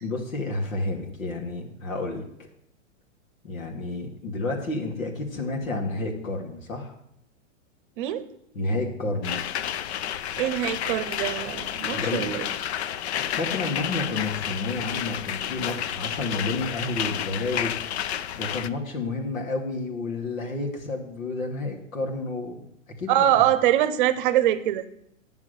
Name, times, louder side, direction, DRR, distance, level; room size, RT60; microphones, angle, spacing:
voice 1, 0.0-2.2 3.4-6.9 8.5-9.4 11.9-12.3 13.4-17.7 18.0-22.6 23.0-23.1 23.3-23.4, left 2 dB, 90° left, 1 dB, 2.8 m, -30 dB
voice 2, 8.0-8.3 10.4-12.5 23.1-24.8, right 12 dB, 40° right, 13 dB, 0.8 m, -23 dB
sound 1, 9.2-18.7, left 10 dB, 55° left, 0.6 m, -31 dB
10.0 x 7.1 x 6.8 m, 0.77 s
hypercardioid pair, 145°, 39 cm